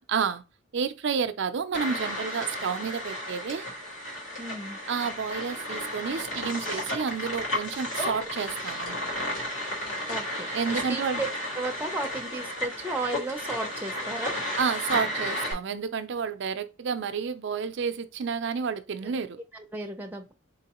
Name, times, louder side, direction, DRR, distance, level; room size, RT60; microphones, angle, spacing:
voice 1, 0.1-0.4 0.7-3.7 4.9-9.1 10.5-11.2 14.6-19.4, right 6 dB, 65° right, 0.4 m, -30 dB
sound 1, 1.7-15.5, left 1 dB, 80° left, 1.9 m, -33 dB
voice 2, 4.4-4.8 10.1-11.3 11.6-14.3 19.0-19.2 19.5-20.3, right 2 dB, 10° right, 0.5 m, -34 dB
4.2 x 3.1 x 2.9 m
head